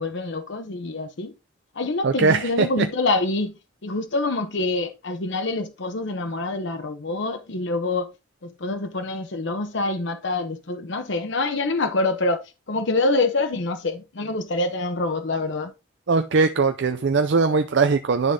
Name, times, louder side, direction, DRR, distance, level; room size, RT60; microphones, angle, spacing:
voice 1, 0.0-1.3 1.7-3.5 3.8-8.1 8.4-12.4 12.7-15.7, left 2 dB, 65° left, 0.8 m, -26 dB
voice 2, 2.0-2.9 16.1-18.3, right 4 dB, 65° right, 0.5 m, -20 dB
11.0 x 3.6 x 3.7 m
head